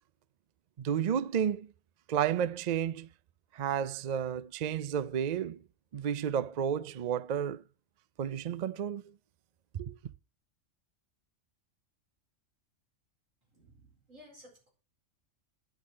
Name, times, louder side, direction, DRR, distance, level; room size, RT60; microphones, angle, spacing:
voice 1, 0.8-1.7 2.1-3.1 3.5-5.6 5.9-7.6 8.2-9.1 9.7-9.9, right 8 dB, 55° right, 0.4 m, -31 dB
voice 2, 13.5-14.7, equal, 85° right, 4.8 m, -56 dB
10.5 x 6.1 x 6.1 m
omnidirectional pair, 1.3 m